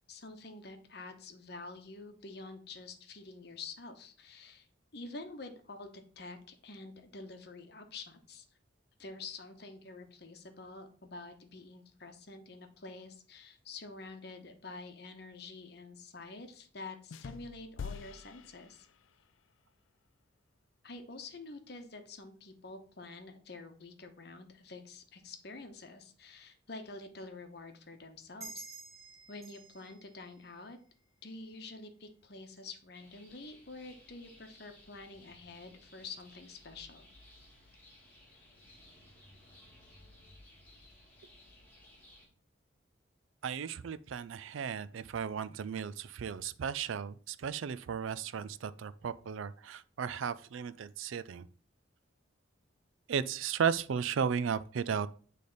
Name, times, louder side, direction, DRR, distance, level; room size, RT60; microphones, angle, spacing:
voice 1, 0.1-4.7 4.9-8.4 9.0-18.9 20.8-28.7 29.3-30.8 31.2-37.1, left 3 dB, 55° left, 0.9 m, -48 dB
sound 1, 17.1-19.3, left 6 dB, 80° left, 0.4 m, -46 dB
sound 2, 28.4-31.5, right 4 dB, 15° right, 2.1 m, -51 dB
sound 3, 32.9-42.3, left 1 dB, 10° left, 1.8 m, -59 dB
voice 2, 43.4-51.5 53.1-55.1, right 7 dB, 80° right, 0.4 m, -35 dB
8.4 x 3.3 x 4.0 m
head